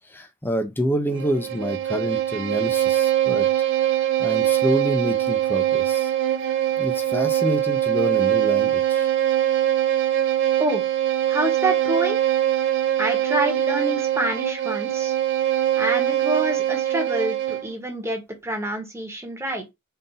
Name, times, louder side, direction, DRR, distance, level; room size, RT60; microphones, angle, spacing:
voice 1, 0.1-3.5 4.2-6.1 6.8-9.1, equal, 10° left, 0.6 m, -27 dB
Bowed string instrument, 1.1-17.7, right 12 dB, 60° right, 0.5 m, -22 dB
voice 2, 11.3-12.2 13.0-15.1 15.8-19.7, right 1 dB, 15° right, 1.1 m, -27 dB
3.8 x 2.6 x 4.0 m
head